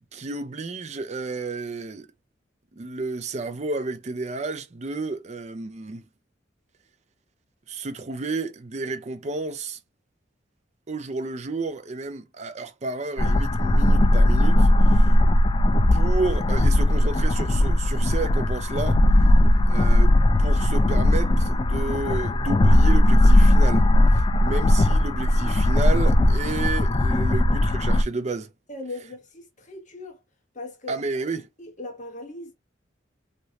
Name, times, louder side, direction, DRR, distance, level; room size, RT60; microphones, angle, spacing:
voice 1, 0.1-2.1 2.7-6.0 7.7-9.8 10.9-15.2 15.9-19.0 19.7-23.9 24.1-28.5 30.9-31.5, right 3 dB, 35° right, 0.5 m, -31 dB
sound 1, 13.2-28.0, left 1 dB, 25° left, 0.3 m, -18 dB
voice 2, 28.7-30.2 30.5-31.0 31.6-32.5, left 2 dB, 40° left, 1.2 m, -38 dB
3.1 x 2.6 x 2.7 m
head